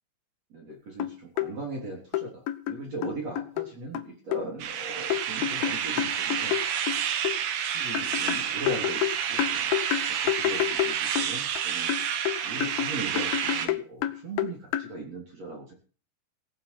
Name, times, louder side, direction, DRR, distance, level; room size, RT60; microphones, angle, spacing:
voice 1, 0.5-6.6 7.7-9.7 10.2-11.9 12.4-15.7, right 3 dB, 35° right, 0 dB, 4.2 m, -39 dB
sound 1, 0.7-0.8 1.0-1.5 2.1-3.7 3.9-4.4 5.1-7.4 7.9-11.6 11.9-14.9, left 13 dB, 90° left, 2.0 m, -29 dB
sound 2, 4.6-13.7, right 9 dB, 65° right, 2.9 m, -29 dB
17.5 x 9.2 x 6.1 m, 0.38 s
omnidirectional pair, 5.9 m